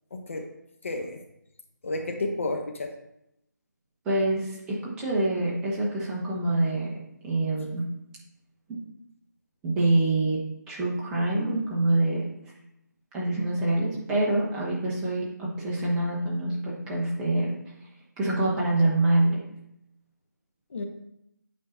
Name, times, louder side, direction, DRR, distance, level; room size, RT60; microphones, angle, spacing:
voice 1, 0.1-0.5 0.8-1.2 1.8-2.9 20.7-20.8, left 2 dB, 40° left, 4 dB, 0.8 m, -31 dB
voice 2, 4.0-6.9 7.2-7.8 8.7-8.8 9.6-10.4 10.7-12.3 13.1-17.5 18.2-19.4, right 2 dB, 5° right, -6 dB, 0.9 m, -25 dB
8.6 x 5.5 x 2.6 m, 0.80 s
figure-of-eight pair, 160°, 10 cm